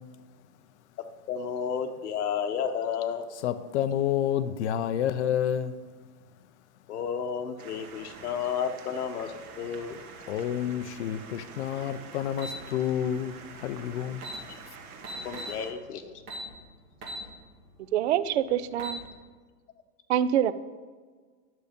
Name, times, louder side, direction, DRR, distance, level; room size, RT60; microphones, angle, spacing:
voice 1, 1.3-3.3 6.9-10.0 14.5-14.6 15.1-16.2, left 7 dB, 80° left, 5 dB, 1.1 m, -32 dB
voice 2, 3.4-5.7 10.3-14.2, left 10 dB, 50° left, 12 dB, 0.6 m, -29 dB
sound 1, 7.6-15.7, right 5 dB, 70° right, 1.8 m, -47 dB
sound 2, 12.4-12.6 13.8-13.9 14.1-14.4 15.0-15.6 16.3-16.5 17.0-17.2 17.7-17.8 18.6-19.0, equal, 25° right, 2.4 m, -38 dB
voice 3, 17.9-19.0 20.1-20.5, right 10 dB, 50° right, 14 dB, 0.5 m, -25 dB
11.0 x 6.7 x 5.1 m, 1.5 s
supercardioid pair, 165°, 46 cm